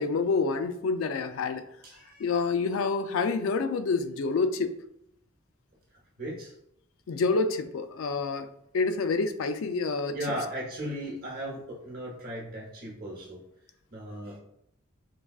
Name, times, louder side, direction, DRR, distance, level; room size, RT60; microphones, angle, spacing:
voice 1, 0.0-1.7 2.2-4.8 7.1-8.5 8.7-10.2, left 4 dB, 80° left, 9 dB, 0.3 m, -27 dB
voice 2, 1.8-2.4 6.2-6.5 10.1-13.4 13.9-14.4, right 1 dB, 45° right, -3 dB, 0.9 m, -36 dB
4.6 x 2.3 x 2.3 m, 0.78 s
head